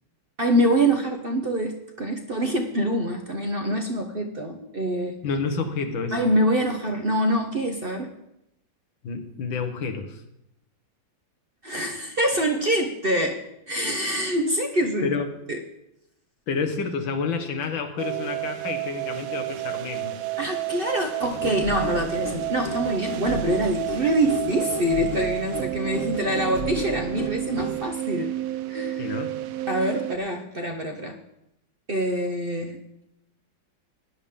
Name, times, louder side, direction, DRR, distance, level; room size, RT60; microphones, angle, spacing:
voice 1, 0.4-5.2 6.1-8.1 11.6-13.4 13.7-15.1 20.4-28.3 28.7-29.1 29.7-31.2 31.9-32.8, equal, 40° right, 3 dB, 0.8 m, -25 dB
voice 2, 5.2-6.2 9.0-10.2 15.0-15.4 16.5-20.2 29.0-29.4, left 5 dB, 90° left, 6 dB, 2.0 m, -29 dB
sound 1, 18.0-30.2, right 16 dB, 80° right, 0.7 m, -31 dB
sound 2, 21.2-27.8, left 1 dB, 70° left, 2.4 m, -34 dB
16.5 x 10.5 x 3.7 m, 0.85 s
omnidirectional pair, 2.0 m